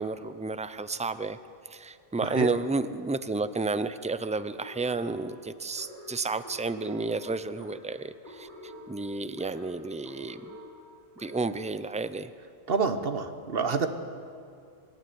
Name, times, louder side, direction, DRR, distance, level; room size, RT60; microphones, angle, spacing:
voice 1, 0.0-1.4 1.7-10.6 11.2-12.3, right 3 dB, 10° right, 13 dB, 0.4 m, -31 dB
sound 1, 4.6-11.7, left 1 dB, 45° right, 4.5 m, -48 dB
voice 2, 12.7-13.9, right 5 dB, 60° right, 9 dB, 1.4 m, -27 dB
25.0 x 12.5 x 9.4 m, 2.4 s
omnidirectional pair, 1.1 m